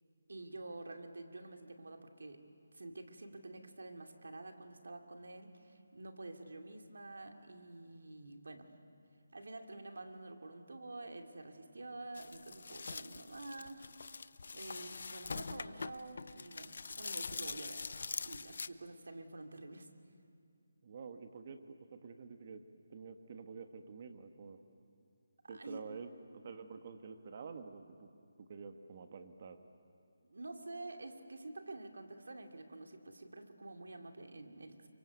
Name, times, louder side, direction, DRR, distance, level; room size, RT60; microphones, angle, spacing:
voice 1, 0.3-2.4 2.7-8.7 9.3-13.9 14.5-18.0 18.2-19.9 25.4-25.8 30.3-34.9, right 2 dB, 80° right, 4 dB, 2.6 m, -48 dB
sound 1, 12.1-18.7, left 4 dB, 60° left, 0.7 m, -44 dB
voice 2, 20.8-24.6 25.5-28.1 28.4-29.6, right 5 dB, 35° right, 7 dB, 1.4 m, -49 dB
27.5 x 24.0 x 8.2 m, 2.3 s
hypercardioid pair, 170°, 0 cm